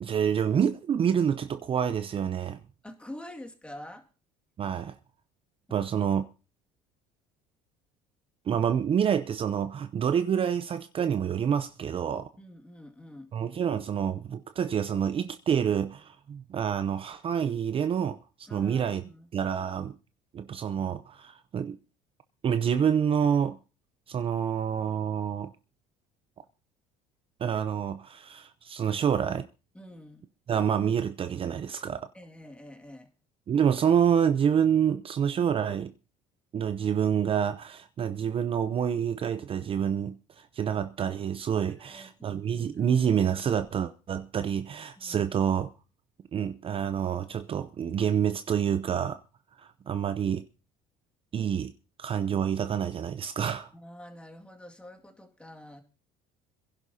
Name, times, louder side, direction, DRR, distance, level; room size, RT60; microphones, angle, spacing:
voice 1, 0.0-2.6 4.6-5.0 5.7-6.2 8.5-12.3 13.3-18.2 18.5-19.0 19.3-19.9 20.3-21.8 22.4-23.6 24.1-25.5 27.4-29.5 30.5-32.1 33.5-35.9 36.5-45.7 46.3-49.2 49.6-50.4 51.3-51.7 52.0-53.7, right 8 dB, 35° right, 0.7 m, -27 dB
voice 2, 2.8-4.1 5.7-5.9 12.4-13.3 18.5-19.3 29.7-30.3 32.1-33.1 41.7-43.0 45.0-45.3 53.7-55.8, left 1 dB, 5° left, 2.2 m, -47 dB
26.0 x 11.0 x 2.8 m
supercardioid pair, 110°, 16 cm